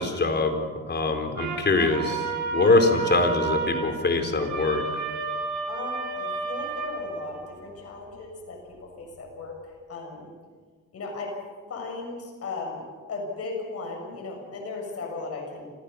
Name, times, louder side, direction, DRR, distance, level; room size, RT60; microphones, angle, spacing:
voice 1, 0.0-5.0, left 3 dB, 35° left, 5 dB, 3.9 m, -24 dB
sound 1, 1.4-7.6, right 4 dB, 70° right, 6.7 m, -31 dB
voice 2, 5.7-9.5 9.9-10.3 10.9-11.4 11.7-12.8 13.1-15.7, left 3 dB, 50° left, 0 dB, 7.4 m, -36 dB
27.0 x 16.5 x 7.0 m, 1.5 s
cardioid pair, 90°, 30 cm